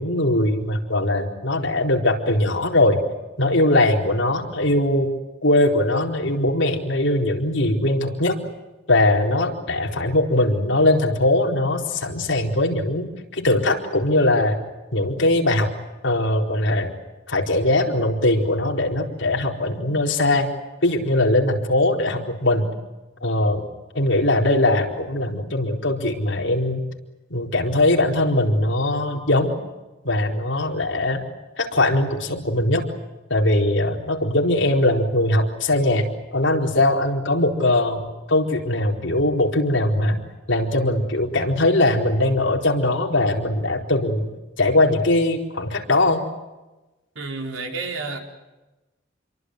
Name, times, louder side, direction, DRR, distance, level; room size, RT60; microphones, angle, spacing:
voice 1, 0.0-3.0 3.4-5.1 5.4-8.4 8.9-14.6 14.9-15.7 16.0-16.9 17.3-20.5 20.8-22.7 23.2-23.6 23.9-26.8 27.3-29.5 30.0-31.2 31.6-32.8 33.3-36.1 36.3-40.2 40.5-44.3 44.6-46.2, left 1 dB, 65° left, 2 dB, 4.3 m, -20 dB
voice 2, 47.1-48.2, right 3 dB, 75° right, 3 dB, 4.5 m, -30 dB
28.0 x 23.5 x 8.0 m, 1.1 s
head